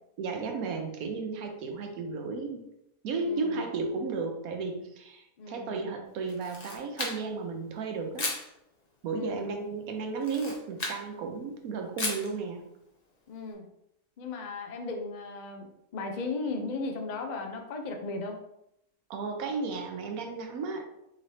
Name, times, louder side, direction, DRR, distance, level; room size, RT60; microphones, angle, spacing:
voice 1, 0.2-2.7 3.0-8.3 9.0-12.6 19.1-20.8, right 4 dB, 80° right, 3 dB, 1.2 m, -34 dB
voice 2, 3.2-3.5 5.4-5.8 9.1-9.5 13.3-13.7 14.2-15.7 15.9-18.4, left 3 dB, 80° left, 3 dB, 0.4 m, -36 dB
Camera, 6.3-7.5 8.2-8.5 10.2-11.0 12.0-12.3, left 2 dB, 40° left, 0.6 m, -34 dB
4.9 x 3.1 x 2.7 m, 0.81 s
omnidirectional pair, 1.5 m